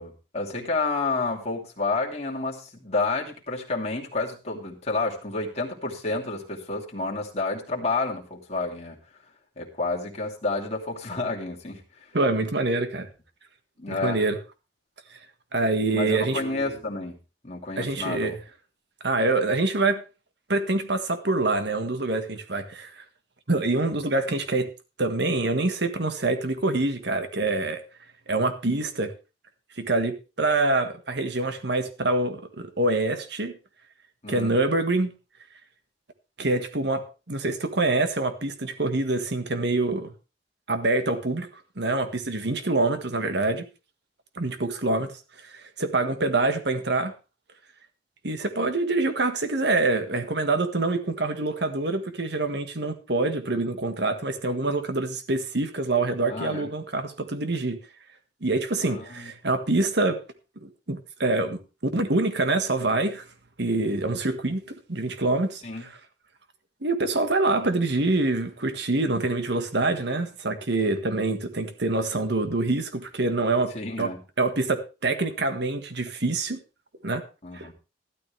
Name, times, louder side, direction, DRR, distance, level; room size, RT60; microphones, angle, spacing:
voice 1, 0.0-9.0 9.6-11.8 13.8-14.2 15.9-17.2 17.4-18.4 34.2-34.5 56.3-56.7 58.8-59.3 65.6-65.8 73.7-74.2 77.4-77.7, left 3 dB, 35° left, -1 dB, 2.7 m, -30 dB
voice 2, 12.1-13.1 13.9-14.4 15.1-15.2 15.5-16.4 17.8-18.4 19.0-20.0 20.5-23.0 23.5-24.7 25.0-27.8 28.3-29.1 29.8-33.5 34.3-35.1 36.4-40.1 40.7-41.5 41.8-43.7 44.4-45.1 45.4-45.5 45.8-47.1 48.2-57.8 58.4-60.2 60.6-61.6 61.9-63.3 63.6-65.9 66.8-74.1 74.4-76.6 77.0-77.2 77.5-77.7, right 2 dB, 65° right, 8 dB, 1.7 m, -25 dB
13.5 x 12.5 x 3.4 m, 0.30 s
head